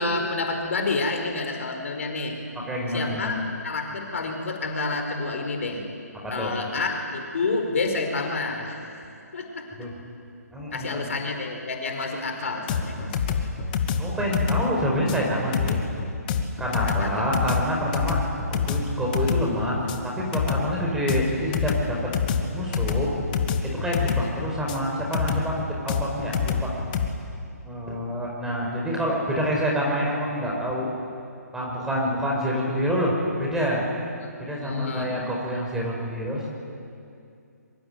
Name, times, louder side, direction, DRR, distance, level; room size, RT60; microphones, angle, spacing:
voice 1, 0.0-2.4 2.9-3.4 3.6-5.8 6.3-9.0 9.3-9.7 10.7-13.1 16.8-17.2 34.2-34.3 34.6-35.3, left 3 dB, 50° left, 3 dB, 4.8 m, -29 dB
voice 2, 2.7-3.4 6.2-6.6 9.8-9.9 10.5-11.1 14.0-15.8 16.6-22.1 22.5-23.1 23.6-26.7 27.6-30.9 31.5-33.8 34.4-36.5, equal, 5° right, -3 dB, 5.4 m, -27 dB
sound 1, 12.7-27.1, left 6 dB, 30° left, 2.1 m, -27 dB
26.0 x 24.0 x 9.5 m, 2.5 s
figure-of-eight pair, 140°, 9 cm